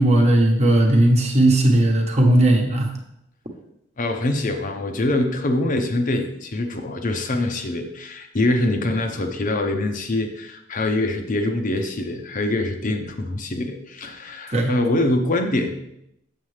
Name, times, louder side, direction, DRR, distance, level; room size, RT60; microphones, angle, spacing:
voice 1, 0.0-3.0 14.5-14.7, right 1 dB, 35° right, 2 dB, 1.1 m, -17 dB
voice 2, 4.0-15.7, left 1 dB, 40° left, 4 dB, 0.7 m, -24 dB
7.2 x 6.6 x 3.3 m, 0.80 s
head